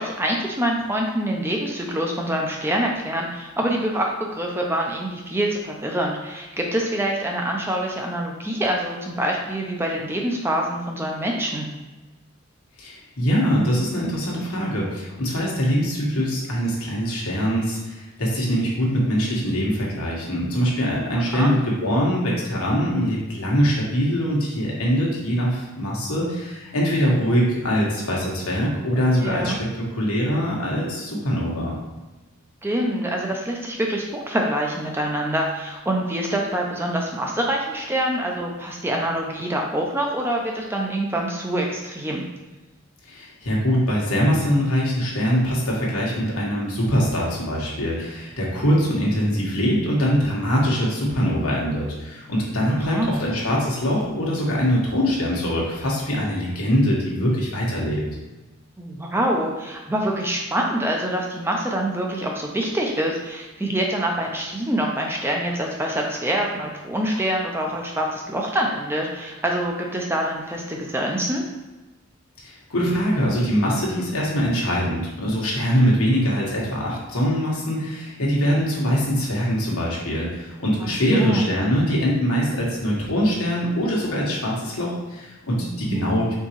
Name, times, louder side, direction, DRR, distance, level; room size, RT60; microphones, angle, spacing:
voice 1, 0.0-11.7 21.3-21.5 29.2-29.6 32.6-42.2 52.7-53.1 58.8-71.4 80.8-81.4 85.6-86.0, right 1 dB, 10° right, 0 dB, 0.4 m, -25 dB
voice 2, 12.8-29.5 29.9-31.7 43.1-58.0 72.4-86.3, equal, 85° left, -4 dB, 1.3 m, -23 dB
4.5 x 3.9 x 3.0 m, 1.1 s
head